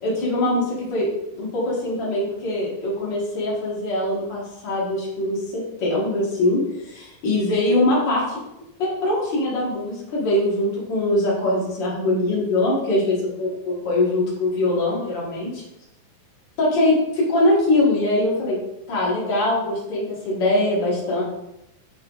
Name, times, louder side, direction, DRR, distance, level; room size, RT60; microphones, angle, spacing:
voice 1, 0.0-1.1 1.3-5.4 5.8-8.4 8.8-15.5 16.6-18.6 18.9-21.2, left 1 dB, 85° left, -6 dB, 1.0 m, -22 dB
8.5 x 3.1 x 3.9 m, 0.87 s
omnidirectional pair, 5.0 m